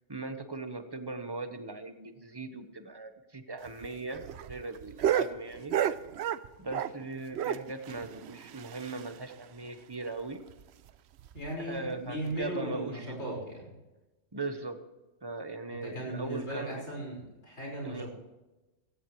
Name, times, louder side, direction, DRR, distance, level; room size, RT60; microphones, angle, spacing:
voice 1, 0.1-5.7 6.6-10.4 11.6-13.3 14.3-14.8 15.2-16.8 17.8-18.1, right 3 dB, 25° right, 8 dB, 1.1 m, -39 dB
Dog bark with echo and splash, 3.6-7.0 7.3-9.3 9.6-9.7 10.0-10.1 10.5-10.6 11.2-11.5 12.3-12.4, right 10 dB, 80° right, 0.9 m, -32 dB
voice 2, 11.3-13.7 15.7-18.1, right 1 dB, 85° left, -2 dB, 5.6 m, -37 dB
16.5 x 16.0 x 3.2 m, 1.1 s
omnidirectional pair, 1.1 m